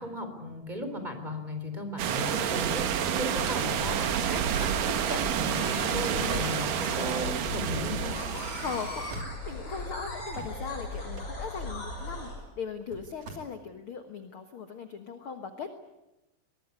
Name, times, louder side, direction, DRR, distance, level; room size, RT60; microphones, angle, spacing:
voice 1, 0.0-8.2, left 1 dB, 10° right, 6 dB, 3.6 m, -36 dB
sound 1, 2.0-9.2, right 9 dB, 65° right, 2.8 m, -29 dB
sound 2, 3.1-12.4, left 1 dB, 30° left, 7.3 m, -38 dB
sound 3, 7.7-8.2 8.7-8.8 9.0-9.9 10.3-13.3, right 3 dB, 45° right, 3.9 m, -48 dB
voice 2, 8.6-15.7, left 6 dB, 55° left, 7 dB, 1.5 m, -39 dB
23.5 x 20.0 x 9.8 m, 0.96 s
omnidirectional pair, 4.3 m